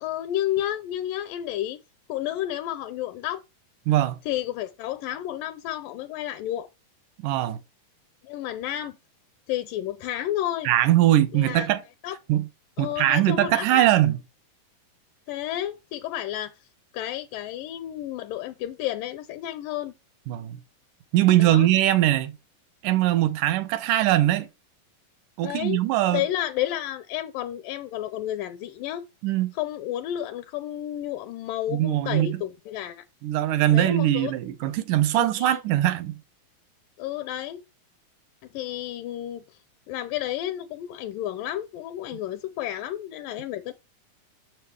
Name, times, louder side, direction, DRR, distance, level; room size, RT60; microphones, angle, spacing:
voice 1, 0.0-1.8 2.1-3.4 4.3-6.7 8.2-9.0 9.5-10.7 11.3-11.7 12.0-12.2 12.8-13.9 15.3-16.5 16.9-19.9 21.4-21.7 25.4-25.8 26.1-29.0 29.5-33.0 33.7-34.3 35.1-35.6 37.0-37.6 38.5-39.4 39.9-43.7, left 12 dB, 80° left, 2.2 m, -31 dB
voice 2, 3.9-4.2 7.2-7.6 10.7-11.8 12.3-12.5 12.8-14.2 20.3-20.6 21.1-22.4 22.8-24.5 25.4-26.2 29.2-29.5 31.7-32.4 33.2-36.2, right 13 dB, 75° right, 2.2 m, -21 dB
7.5 x 7.0 x 3.2 m
omnidirectional pair, 4.0 m